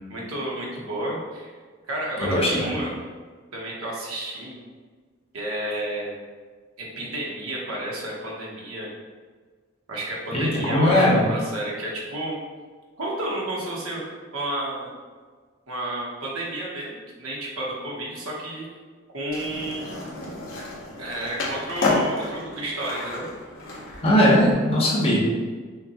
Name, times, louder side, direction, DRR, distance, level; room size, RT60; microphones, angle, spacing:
voice 1, 0.1-1.5 1.9-2.9 3.5-4.6 5.3-6.1 6.8-8.9 9.9-12.4 13.0-14.9 15.7-18.7 19.1-19.9 21.0-23.2, right 1 dB, 80° right, -3 dB, 1.0 m, -31 dB
voice 2, 2.2-2.7 10.3-11.2 24.0-25.2, equal, 30° left, -5 dB, 0.9 m, -19 dB
Skateboard, 19.3-24.5, left 2 dB, 65° left, 0.9 m, -30 dB
5.7 x 2.2 x 2.9 m, 1.5 s
head